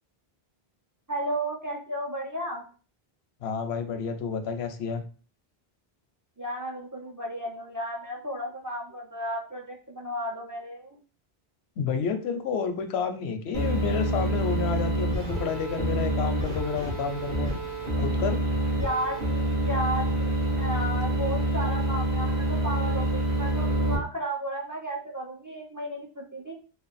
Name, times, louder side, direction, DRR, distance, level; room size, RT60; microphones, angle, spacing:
voice 1, 1.1-2.6 6.4-11.0 18.8-26.6, right 1 dB, 20° right, -1 dB, 0.6 m, -33 dB
voice 2, 3.4-5.0 11.8-17.5 18.0-18.4, left 6 dB, 90° left, 7 dB, 0.9 m, -30 dB
sound 1, 13.5-23.9, right 1 dB, 50° right, 1.4 m, -27 dB
3.2 x 2.2 x 4.0 m, 0.38 s
omnidirectional pair, 1.0 m